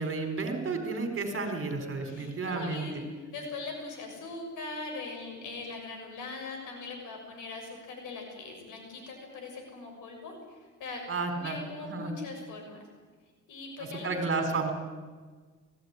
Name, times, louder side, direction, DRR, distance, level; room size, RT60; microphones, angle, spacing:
voice 1, 0.0-2.8 11.1-11.6 11.8-12.1 14.0-14.7, right 3 dB, 45° right, 6 dB, 4.5 m, -31 dB
voice 2, 2.0-10.3 10.8-11.0 11.3-12.8 13.5-14.5, left 3 dB, 85° left, 2 dB, 6.7 m, -41 dB
20.0 x 16.0 x 9.9 m, 1.4 s
cardioid pair, 90°, 30 cm